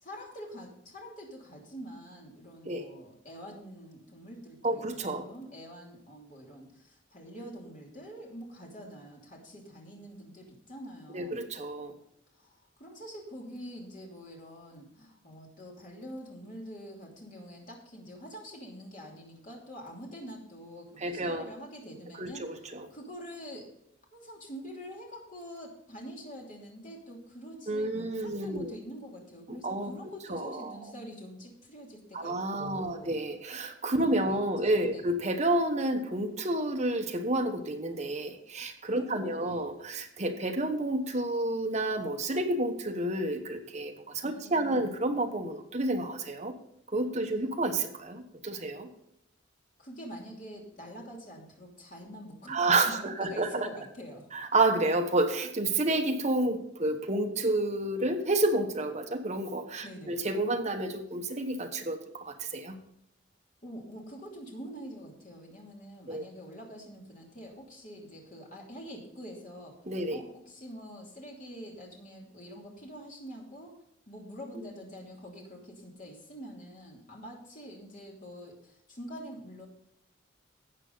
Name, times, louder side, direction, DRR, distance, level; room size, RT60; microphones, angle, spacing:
voice 1, 0.0-11.4 12.3-23.7 24.1-33.2 34.1-35.1 38.9-39.6 44.3-44.9 49.8-54.3 59.8-60.2 63.6-69.7 70.1-73.8 74.1-79.7, equal, 40° left, -1 dB, 2.9 m, -46 dB
voice 2, 4.6-5.3 11.1-11.9 21.0-21.4 22.2-22.8 27.7-28.7 29.5-29.9 30.3-30.8 32.1-46.5 46.9-48.9 52.5-53.7 54.3-62.8 66.1-66.2 69.9-70.2, right 2 dB, 35° right, 4 dB, 1.1 m, -30 dB
13.0 x 8.2 x 4.0 m, 0.75 s
head